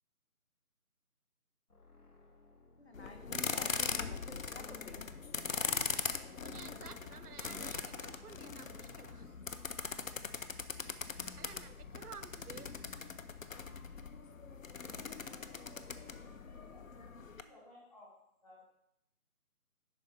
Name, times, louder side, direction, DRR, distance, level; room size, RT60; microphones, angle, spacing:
sound 1, 1.7-9.2, left 2 dB, 80° left, 1.3 m, -61 dB
voice 1, 2.8-5.1 5.5-6.3, left 2 dB, 45° left, 5 dB, 0.9 m, -52 dB
sound 2, 2.9-17.4, left 5 dB, 65° left, 0.5 m, -41 dB
voice 2, 6.3-9.4 11.2-12.7, right 7 dB, 85° right, 14 dB, 0.6 m, -53 dB
voice 3, 16.5-18.1 18.4-18.6, left 1 dB, 25° left, -5 dB, 2.0 m, -59 dB
11.0 x 4.3 x 3.1 m, 0.80 s
figure-of-eight pair, 160°, 44 cm